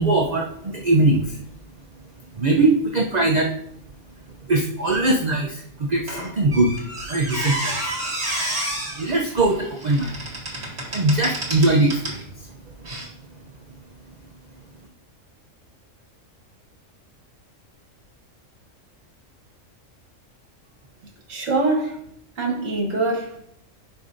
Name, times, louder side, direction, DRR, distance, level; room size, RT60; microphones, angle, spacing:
voice 1, 0.0-1.4 2.3-3.6 4.5-6.8 7.0-8.1 9.0-10.2 10.5-12.9 13.4-13.5, right 2 dB, 40° right, 0 dB, 0.7 m, -21 dB
Squeak, 6.1-12.2 12.8-13.1, right 1 dB, 55° right, 2.3 m, -30 dB
voice 2, 21.3-22.0 22.4-23.5, right 2 dB, 70° right, 0 dB, 1.7 m, -24 dB
10.5 x 5.4 x 2.6 m, 0.72 s
omnidirectional pair, 1.4 m